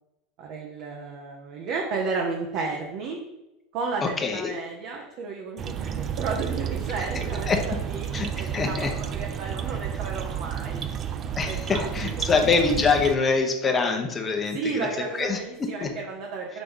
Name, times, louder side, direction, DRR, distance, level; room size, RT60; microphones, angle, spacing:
voice 1, 0.4-3.2 3.7-8.1 8.4-10.8 11.4-12.3 14.5-16.6, right 4 dB, 55° right, 0 dB, 0.9 m, -33 dB
voice 2, 4.2-4.5 7.5-7.6 8.1-8.9 11.4-14.6 15.2-15.4 15.8-15.9, left 4 dB, 25° left, 3 dB, 0.9 m, -24 dB
sound 1, 5.6-13.2, right 8 dB, 35° right, 0.4 m, -31 dB
5.1 x 3.3 x 5.5 m, 0.93 s
supercardioid pair, 115°, 0 cm